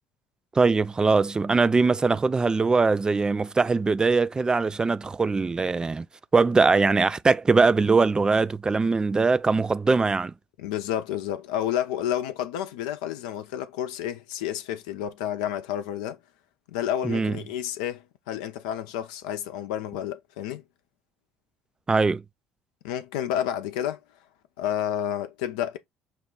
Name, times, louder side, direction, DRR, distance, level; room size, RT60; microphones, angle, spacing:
voice 1, 0.6-6.1 6.3-10.3 17.0-17.3 21.9-22.2, right 4 dB, 20° right, 0.3 m, -21 dB
voice 2, 10.6-16.2 16.7-20.6 22.8-24.0 24.6-25.8, left 11 dB, 70° left, 0.6 m, -30 dB
5.9 x 2.3 x 3.7 m
figure-of-eight pair, 55°, 4 cm